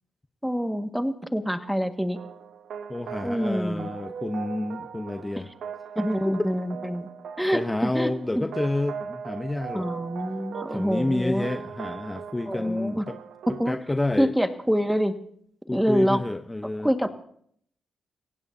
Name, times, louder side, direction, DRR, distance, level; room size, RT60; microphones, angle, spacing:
voice 1, 0.4-2.2 3.2-3.9 6.0-7.1 7.4-8.5 9.7-11.5 12.4-13.1 13.6-13.8 14.2-15.1 15.7-16.2 16.8-17.1, equal, 5° right, 7 dB, 1.8 m, -26 dB
sound 1, 2.2-13.8, right 7 dB, 75° right, 0.9 m, -39 dB
voice 2, 2.9-5.5 6.3-6.4 7.5-9.9 10.7-13.2 13.5-14.3 15.7-16.9, left 2 dB, 20° left, 7 dB, 1.0 m, -29 dB
30.0 x 16.5 x 2.8 m, 0.64 s
supercardioid pair, 55°, 0 cm